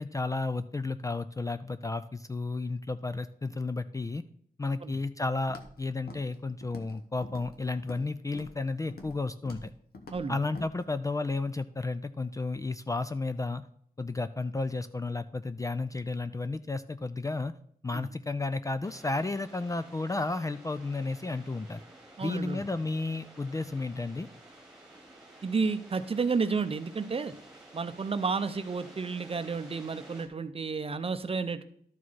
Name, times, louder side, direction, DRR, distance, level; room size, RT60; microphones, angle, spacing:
voice 1, 0.0-4.2 4.6-9.7 10.3-13.6 14.0-17.5 17.8-21.8 22.2-24.3, left 3 dB, 20° left, 11 dB, 0.3 m, -32 dB
Walk footsteps, 5.5-5.8 6.1-6.4 6.6-7.0 7.2-8.1 8.3-8.6 8.9-9.2 9.5-9.7 9.9-10.2 10.5-10.7, left 2 dB, 75° left, 1.3 m, -46 dB
sound 1, 18.8-30.3, right 1 dB, 5° right, 1.7 m, -52 dB
voice 2, 22.2-22.6 25.4-27.3 27.7-31.6, right 4 dB, 35° right, 11 dB, 0.6 m, -31 dB
12.0 x 4.7 x 4.1 m, 0.65 s
wide cardioid pair, 130°, 16 cm